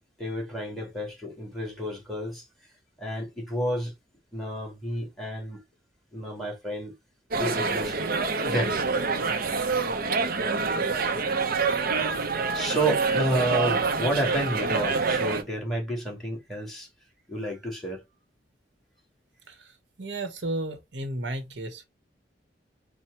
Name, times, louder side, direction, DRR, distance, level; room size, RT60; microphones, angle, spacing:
voice 1, 0.2-2.4 3.0-3.9 4.3-5.6 6.1-6.9 7.4-8.0 8.4-8.7 12.2-16.9 17.3-18.0, right 1 dB, ahead, 1.8 m, -30 dB
sound 1, 7.3-15.4, right 4 dB, 55° right, 0.6 m, -26 dB
voice 2, 20.0-21.8, right 1 dB, 85° right, 1.0 m, -33 dB
4.4 x 2.2 x 4.4 m
head